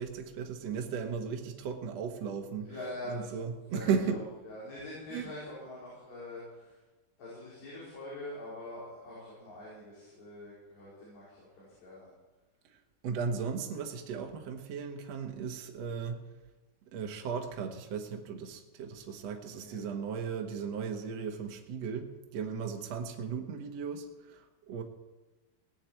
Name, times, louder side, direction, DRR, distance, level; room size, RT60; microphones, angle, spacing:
voice 1, 0.0-2.7 3.1-4.2 5.1-5.3 13.0-16.2 16.9-24.8, right 6 dB, 60° right, 3 dB, 1.7 m, -36 dB
voice 2, 2.6-3.3 3.7-6.8 7.2-12.1 19.4-19.8, left 1 dB, 85° left, -8 dB, 7.2 m, -44 dB
18.0 x 7.4 x 9.0 m, 1.2 s
omnidirectional pair, 4.8 m